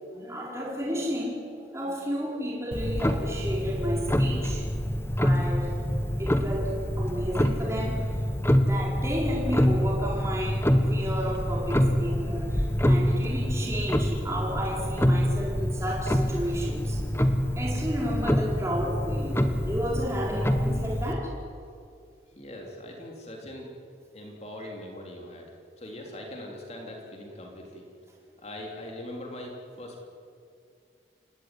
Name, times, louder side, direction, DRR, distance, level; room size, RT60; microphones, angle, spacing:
voice 1, 0.1-4.7 5.1-5.8 6.2-6.7 7.0-10.6 10.9-17.0 17.6-21.3 24.6-24.7, equal, 15° right, -3 dB, 4.6 m, -32 dB
Clock, 2.7-21.1, equal, 15° left, 1.4 m, -26 dB
voice 2, 22.3-23.7 24.1-27.9 28.4-30.0, left 1 dB, 35° left, 0 dB, 3.6 m, -41 dB
28.5 x 17.5 x 9.9 m, 2.3 s
head